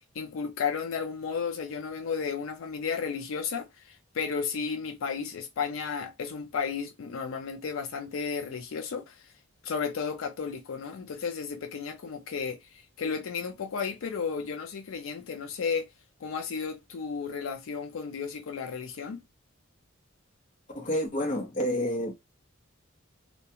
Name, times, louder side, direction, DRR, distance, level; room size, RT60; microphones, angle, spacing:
voice 1, 0.1-9.3 9.6-15.9 16.2-19.2, left 6 dB, 80° left, 0.4 m, -33 dB
voice 2, 20.7-22.1, equal, 40° left, 0.7 m, -29 dB
2.3 x 2.2 x 2.7 m
head